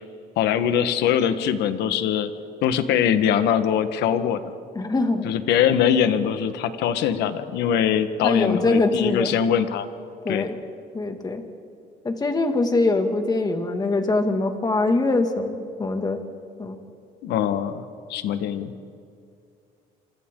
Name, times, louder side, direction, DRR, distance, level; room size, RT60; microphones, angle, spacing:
voice 1, 0.4-2.3 2.6-4.4 5.2-9.9 10.3-10.5 17.2-17.8 18.1-18.7, left 9 dB, 85° left, 10 dB, 1.4 m, -22 dB
voice 2, 4.7-5.3 8.2-9.4 10.2-10.6 10.9-11.4 12.0-16.2 16.6-16.8, left 2 dB, 25° left, 5 dB, 2.2 m, -23 dB
27.0 x 25.0 x 3.8 m, 2.4 s
cardioid pair, 110°, 17 cm